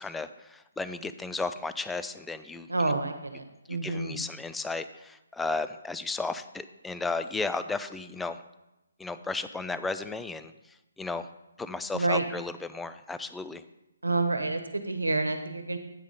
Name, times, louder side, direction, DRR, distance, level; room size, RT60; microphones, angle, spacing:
voice 1, 0.0-3.0 3.7-8.4 9.0-10.5 11.0-11.3 11.6-13.6, left 3 dB, 5° left, 11 dB, 0.3 m, -34 dB
voice 2, 2.7-4.2 11.9-12.2 14.0-15.8, right 2 dB, 80° right, 7 dB, 1.1 m, -28 dB
9.0 x 5.0 x 5.4 m, 0.94 s
figure-of-eight pair, 140°, 0 cm